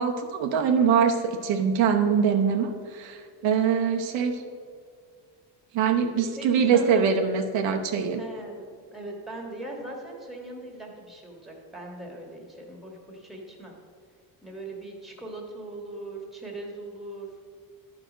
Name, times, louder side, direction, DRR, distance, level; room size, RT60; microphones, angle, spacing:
voice 1, 0.0-4.4 5.7-8.2, right 7 dB, 80° right, 3 dB, 1.0 m, -23 dB
voice 2, 6.1-6.5 6.7-7.0 8.2-13.7 14.4-17.3, right 2 dB, ahead, 0 dB, 1.5 m, -40 dB
11.5 x 4.9 x 5.0 m, 2.1 s
cardioid pair, 130°, 44 cm